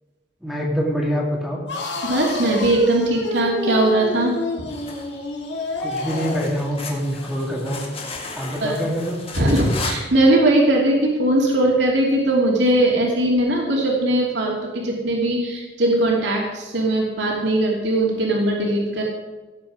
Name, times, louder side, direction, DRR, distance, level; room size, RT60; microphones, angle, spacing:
voice 1, 0.4-1.6 5.8-7.8 8.3-9.2, equal, ahead, -2 dB, 2.1 m, -25 dB
sound 1, 1.7-6.6, left 2 dB, 65° left, 2.2 m, -28 dB
voice 2, 2.0-4.3 8.6-8.8 9.3-19.0, right 1 dB, 65° right, -2 dB, 2.8 m, -19 dB
sound 2, 4.7-10.0, left 3 dB, 30° left, 2.0 m, -35 dB
17.5 x 7.7 x 5.0 m, 1.2 s
head